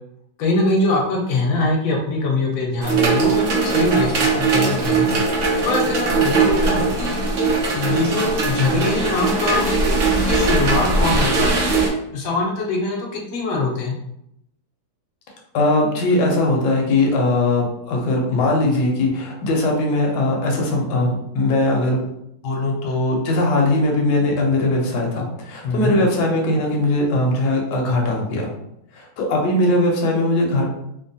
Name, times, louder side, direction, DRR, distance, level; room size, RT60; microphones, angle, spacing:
voice 1, 0.4-5.1 5.6-7.2 7.7-13.9 25.6-26.0, left 2 dB, 85° left, 0 dB, 1.4 m, -23 dB
sound 1, 2.8-11.9, right 3 dB, 85° right, 0.6 m, -20 dB
voice 2, 15.5-22.0 22.4-28.5 28.9-30.7, left 2 dB, 70° left, -1 dB, 1.2 m, -20 dB
3.7 x 2.1 x 2.6 m, 0.78 s
omnidirectional pair, 2.1 m